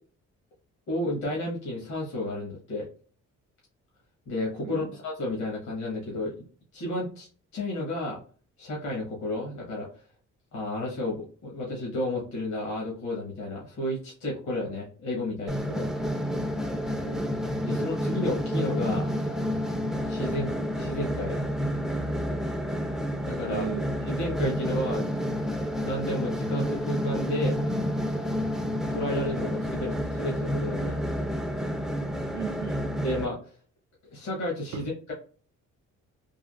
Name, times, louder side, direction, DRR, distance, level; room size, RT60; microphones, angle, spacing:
voice 1, 0.9-2.9 4.3-6.3 6.7-7.3 7.5-8.2 8.6-9.9 10.5-15.9 17.6-19.1 20.0-21.4 23.2-23.7 24.1-25.1 25.8-27.5 28.9-31.0 33.0-33.4 34.0-35.1, left 1 dB, 65° left, 1.3 m, -32 dB
voice 2, 4.6-5.0 16.7-17.2 23.5-23.9 32.3-33.0 34.7-34.9, right 8 dB, 70° right, 0.5 m, -37 dB
sound 1, 15.5-33.2, equal, ahead, 0.5 m, -29 dB
3.5 x 2.3 x 2.3 m
cardioid pair, 90°, 30 cm